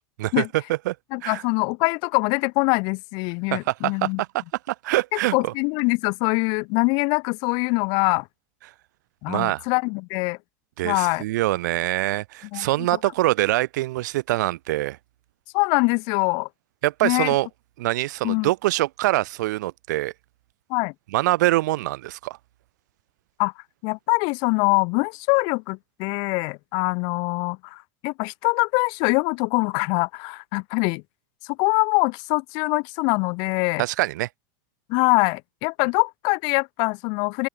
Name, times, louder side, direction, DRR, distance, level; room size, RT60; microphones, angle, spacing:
voice 1, 0.2-0.9 1.2-1.4 3.5-5.5 9.3-9.6 10.8-15.0 16.8-17.5 17.8-20.1 21.1-22.4 33.8-34.3, right 17 dB, 75° right, 1.6 m, -24 dB
voice 2, 1.1-4.2 5.3-8.3 9.2-10.4 10.8-11.2 12.5-12.7 15.5-16.5 17.0-17.3 18.2-18.5 20.7-20.9 23.4-23.5 23.8-31.0 31.5-33.8 34.9-37.5, left 32 dB, 50° left, 0.9 m, -23 dB
supercardioid pair, 150°, 10 cm